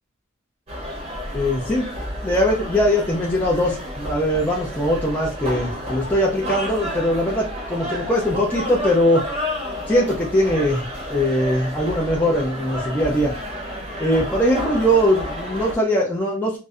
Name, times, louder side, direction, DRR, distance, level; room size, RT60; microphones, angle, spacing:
sound 1, 0.7-15.8, equal, 30° right, 0.7 m, -31 dB
voice 1, 1.3-1.9 2.2-9.2 9.9-13.3 14.0-16.6, equal, 10° left, -4 dB, 0.4 m, -21 dB
2.6 x 2.0 x 2.3 m, 0.32 s
head